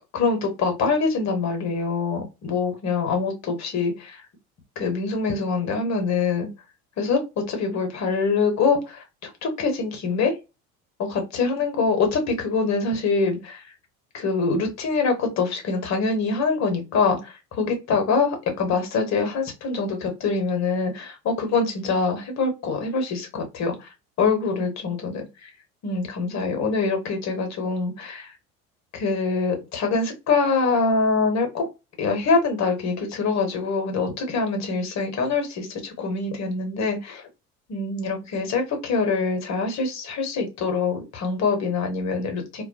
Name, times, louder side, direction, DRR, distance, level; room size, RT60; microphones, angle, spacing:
voice 1, 0.1-4.2 4.8-6.5 7.0-10.3 11.0-13.6 14.1-23.9 24.2-25.5 25.8-28.3 28.9-31.7 32.0-37.3 37.7-42.6, left 4 dB, 40° left, 4 dB, 1.0 m, -24 dB
2.2 x 2.1 x 2.7 m, 0.26 s
figure-of-eight pair, 65°, 44 cm